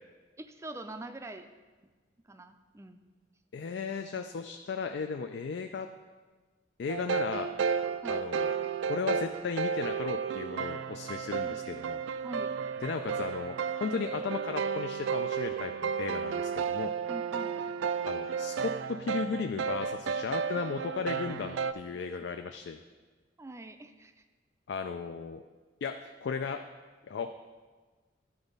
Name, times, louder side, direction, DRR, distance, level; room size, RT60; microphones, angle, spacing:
voice 1, 0.4-1.5 2.2-3.0 8.0-8.2 11.4-11.6 12.2-12.5 17.1-17.6 21.9-22.0 23.4-24.2, right 1 dB, 15° right, 8 dB, 0.4 m, -44 dB
voice 2, 3.5-5.9 6.8-7.5 8.1-8.5 8.8-12.0 12.8-16.9 18.0-22.8 24.7-25.4 25.8-26.6 27.1-27.3, left 5 dB, 65° left, 6 dB, 0.4 m, -35 dB
sound 1, 6.9-21.7, right 6 dB, 80° right, 0.3 m, -33 dB
11.5 x 4.0 x 5.3 m, 1.4 s
head